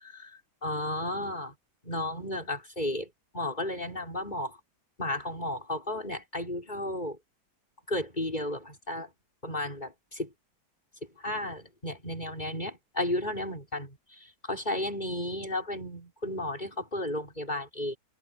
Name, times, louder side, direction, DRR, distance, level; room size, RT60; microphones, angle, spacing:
voice 1, 0.6-1.5 1.8-3.1 3.3-4.6 5.0-7.2 7.9-9.1 9.4-10.3 11.2-14.0 14.4-18.0, left 1 dB, 20° left, 6.3 m, -33 dB
omnidirectional pair, 2.3 m